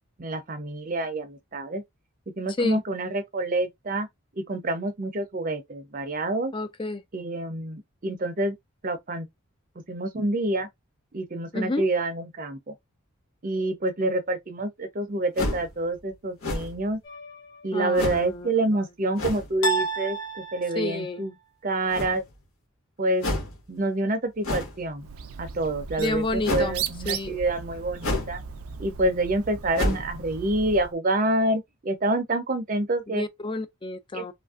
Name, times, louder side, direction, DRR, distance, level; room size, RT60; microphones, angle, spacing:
voice 1, 0.2-1.8 2.4-4.1 4.4-6.5 7.1-8.6 8.8-9.3 9.9-10.7 11.1-12.7 13.4-17.0 17.6-21.3 21.6-22.2 23.0-23.3 23.7-25.1 25.4-28.4 28.8-33.3 34.1-34.3, right 2 dB, 40° right, 0.6 m, -27 dB
voice 2, 6.5-7.0 11.5-11.9 17.7-18.5 20.8-21.2 26.0-26.8 27.1-27.4 33.1-34.3, left 2 dB, 25° left, 0.4 m, -29 dB
sound 1, 15.4-15.7 16.4-16.9 17.9-18.3 19.2-19.5 21.9-22.4 23.2-23.6 24.4-24.8 26.4-26.8 28.0-28.4 28.7-28.8 29.7-30.1, left 1 dB, 85° left, 1.4 m, -29 dB
sound 2, 17.0-17.8 19.6-21.1, right 2 dB, 60° left, 0.9 m, -31 dB
Bird, 25.0-30.9, right 7 dB, 85° right, 0.4 m, -37 dB
3.1 x 2.5 x 2.4 m
head